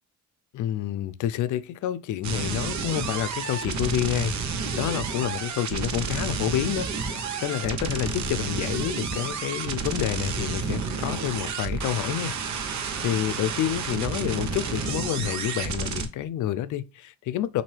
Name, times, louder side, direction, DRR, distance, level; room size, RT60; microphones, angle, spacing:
voice 1, 0.5-12.3 12.6-17.6, left 12 dB, 75° left, 0.5 m, -29 dB
sound 1, 2.2-16.1, right 5 dB, 65° right, 1.0 m, -30 dB
5.9 x 2.7 x 3.2 m
cardioid pair, 90°, 30 cm